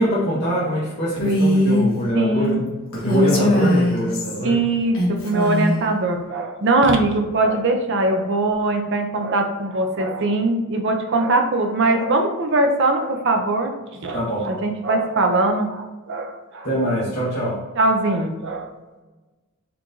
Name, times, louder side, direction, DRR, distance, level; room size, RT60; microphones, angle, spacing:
voice 1, 0.0-4.6 14.1-14.5 16.6-17.6, left 1 dB, 55° left, -9 dB, 1.0 m, -23 dB
Female speech woman speaking, 1.2-1.9 2.9-4.4 4.9-5.8, equal, 80° left, 1.4 m, -20 dB
voice 2, 2.1-2.6 3.3-3.6 4.4-13.7 14.0-16.7 17.8-18.7, right 2 dB, 60° right, 4 dB, 0.6 m, -21 dB
4.5 x 2.5 x 3.8 m, 1.2 s
head